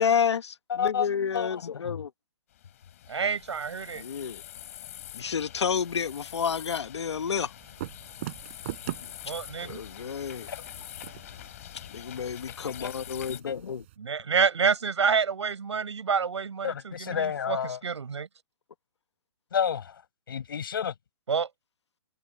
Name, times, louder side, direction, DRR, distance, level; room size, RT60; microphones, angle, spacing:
voice 1, 0.0-2.1 4.0-4.4 5.2-7.5 9.6-10.5 11.9-13.8, left 7 dB, 75° left, 1.1 m, -30 dB
voice 2, 0.7-1.1 1.3-2.0 10.5-10.6 12.8-12.9 13.5-13.6 16.6-17.8 19.5-20.0 20.3-20.9, left 8 dB, 50° left, 7.4 m, -30 dB
sound 1, 2.5-13.4, left 12 dB, 30° left, 3.4 m, -45 dB
voice 3, 3.1-4.0 9.3-9.8 14.0-17.6 17.8-18.3 21.3-21.5, right 6 dB, 80° right, 6.2 m, -28 dB
sound 2, 7.6-14.0, right 17 dB, 25° right, 4.2 m, -43 dB
hypercardioid pair, 175°, 15 cm